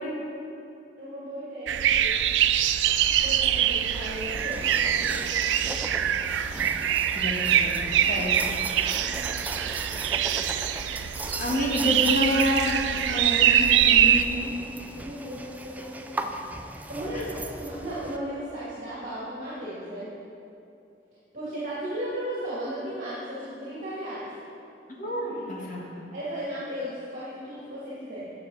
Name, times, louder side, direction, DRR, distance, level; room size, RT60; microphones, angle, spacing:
voice 1, 1.0-2.4 3.2-5.9 7.7-8.1 8.4-8.5 9.0-9.3 9.6-10.3 10.8-10.9 15.0-16.2 16.6-20.1 21.3-24.3 25.2-25.6 26.1-28.3, equal, 45° right, -10 dB, 2.3 m, -36 dB
sound 1, 1.7-14.2, right 10 dB, 90° right, 0.3 m, -24 dB
sound 2, 2.9-18.2, right 2 dB, 10° right, 0.4 m, -39 dB
voice 2, 7.1-7.8 8.1-8.7 11.4-14.6 17.1-17.2 25.0-26.1, left 1 dB, 45° left, -3 dB, 1.6 m, -28 dB
sound 3, 9.7-9.8 10.5-10.6 11.4-11.5 12.0-13.2, left 4 dB, 65° left, 1.0 m, -44 dB
11.5 x 6.8 x 4.0 m, 2.7 s
head